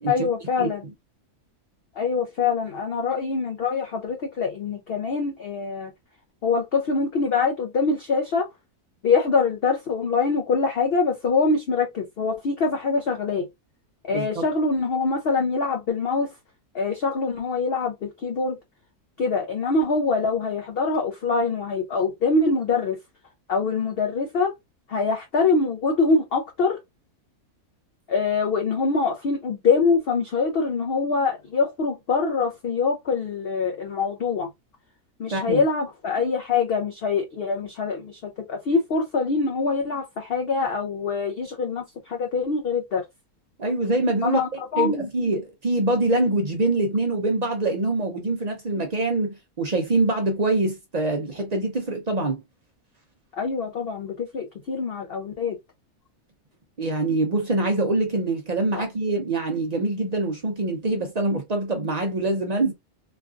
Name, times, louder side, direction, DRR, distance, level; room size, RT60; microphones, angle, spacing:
voice 1, 0.1-0.9 2.0-5.9 6.4-8.5 9.0-13.5 14.0-16.3 16.7-18.6 19.2-23.0 23.5-24.5 24.9-26.8 28.1-34.5 35.2-43.0 44.2-45.1 53.4-55.6 58.7-58.8, left 4 dB, 65° left, 0.6 m, -24 dB
voice 2, 14.1-14.5 35.3-35.6 43.6-44.4 44.8-52.4 56.8-62.7, right 2 dB, 55° right, 0.4 m, -24 dB
3.1 x 2.4 x 2.4 m
omnidirectional pair, 1.6 m